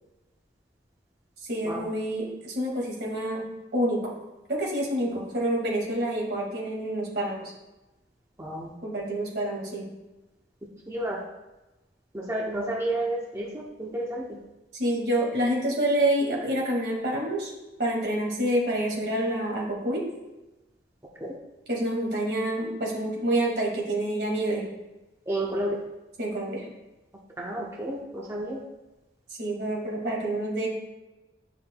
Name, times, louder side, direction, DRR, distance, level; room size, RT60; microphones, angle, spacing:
voice 1, 1.4-3.4 3.7-4.1 4.5-7.4 8.8-9.9 14.8-17.5 17.8-20.0 21.7-24.6 26.2-26.7 29.4-30.7, right 1 dB, 70° right, -2 dB, 1.9 m, -27 dB
voice 2, 8.4-8.7 10.9-11.2 12.1-14.4 21.2-21.4 25.3-25.8 27.4-28.6, right 1 dB, 15° right, -2 dB, 0.6 m, -31 dB
9.6 x 5.5 x 2.2 m, 1.1 s
head